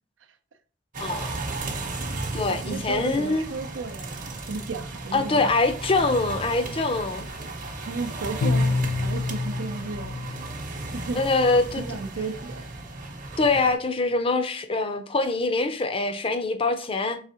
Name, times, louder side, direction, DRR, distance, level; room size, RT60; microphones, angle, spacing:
sound 1, 0.9-13.7, right 2 dB, 45° right, 0.9 m, -35 dB
voice 1, 1.0-1.3 2.3-3.4 5.1-7.3 11.2-11.8 13.4-17.2, left 3 dB, 30° left, 0.5 m, -24 dB
voice 2, 2.5-5.5 7.8-10.2 10.9-11.2 11.8-12.7, right 4 dB, 85° right, 0.5 m, -34 dB
Bowed string instrument, 8.4-11.2, left 3 dB, 90° left, 0.4 m, -27 dB
4.7 x 3.3 x 2.8 m
head